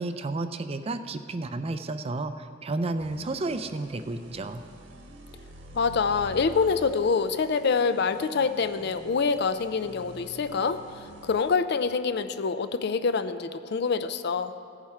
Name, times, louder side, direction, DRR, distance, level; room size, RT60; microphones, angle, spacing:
voice 1, 0.0-4.6, right 2 dB, 30° right, 10 dB, 0.4 m, -32 dB
sound 1, 3.0-11.5, right 1 dB, 75° right, 1.3 m, -47 dB
voice 2, 5.7-14.5, left 5 dB, 55° left, 11 dB, 0.4 m, -26 dB
16.0 x 7.3 x 4.8 m, 2.4 s
head